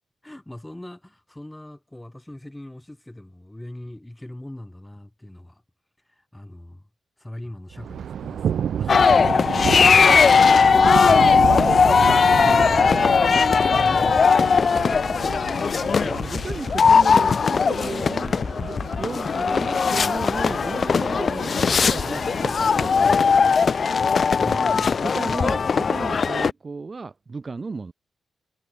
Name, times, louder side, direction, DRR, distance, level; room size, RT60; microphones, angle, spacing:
voice 1, 0.2-5.6 6.1-6.8 7.2-10.3 12.0-15.5 24.4-25.6, left 1 dB, 10° left, 3.8 m, -41 dB
Thunder, 7.7-23.6, right 8 dB, 75° right, 3.2 m, -31 dB
sound 1, 8.9-26.5, left 5 dB, 50° left, 0.8 m, -19 dB
voice 2, 12.3-13.0 15.8-23.6 24.4-24.7 25.0-27.9, right 4 dB, 35° right, 1.5 m, -34 dB
cardioid pair, 90°, 0 cm